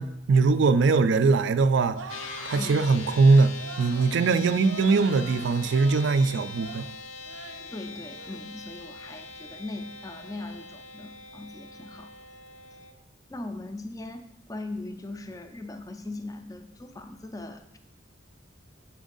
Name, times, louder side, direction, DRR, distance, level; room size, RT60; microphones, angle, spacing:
voice 1, 0.0-2.0 2.4-3.5 3.8-6.9, right 4 dB, 65° right, 12 dB, 0.4 m, -21 dB
sound 1, 1.9-2.9 3.6-4.1 4.6-6.2 6.5-6.9 7.2-7.7 8.1-8.4, right 3 dB, 80° right, 0.7 m, -43 dB
sound 2, 2.1-12.9, left 4 dB, 85° left, 0.6 m, -42 dB
voice 2, 7.7-12.1 13.3-17.8, left 2 dB, 15° left, 8 dB, 0.4 m, -39 dB
7.1 x 4.4 x 3.9 m, 0.82 s
head